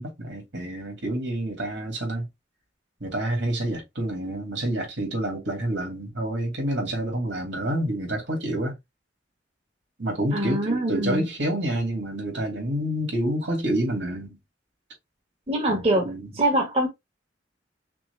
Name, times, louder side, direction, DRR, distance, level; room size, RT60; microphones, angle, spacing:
voice 1, 0.0-2.3 3.0-8.7 10.0-14.4 15.7-16.3, right 1 dB, 75° right, 2.3 m, -28 dB
voice 2, 10.3-11.3 15.5-16.9, right 1 dB, 35° right, 1.5 m, -24 dB
5.9 x 2.3 x 3.3 m
head